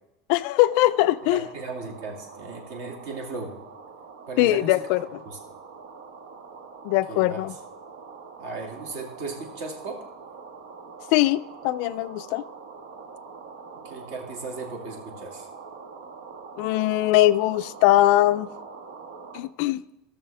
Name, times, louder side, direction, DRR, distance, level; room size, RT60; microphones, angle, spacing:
voice 1, 0.3-1.4 4.4-5.0 6.8-7.5 11.1-12.4 16.6-18.5 19.3-19.8, left 16 dB, 50° left, 0.3 m, -21 dB
sound 1, 0.6-19.4, right 5 dB, 85° right, 1.4 m, -44 dB
voice 2, 1.3-3.6 4.3-4.8 5.3-5.4 7.1-7.4 8.4-10.0 13.8-15.5, right 3 dB, 55° right, 2.1 m, -36 dB
16.5 x 6.7 x 3.3 m
cardioid pair, 175°, 0 cm